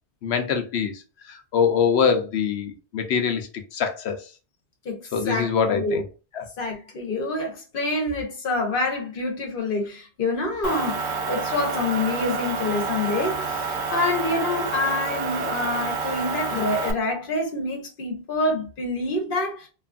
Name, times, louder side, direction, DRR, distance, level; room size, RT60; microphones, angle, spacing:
voice 1, 0.2-1.0 1.3-4.2 5.1-6.0 6.3-6.5, left 6 dB, 85° left, 0.9 m, -24 dB
voice 2, 4.8-6.0 6.6-13.6 13.9-19.7, left 2 dB, 60° left, 1.1 m, -27 dB
Motor vehicle (road) / Engine, 10.6-16.9, right 4 dB, 90° right, 0.9 m, -28 dB
2.9 x 2.4 x 2.4 m
omnidirectional pair, 1.1 m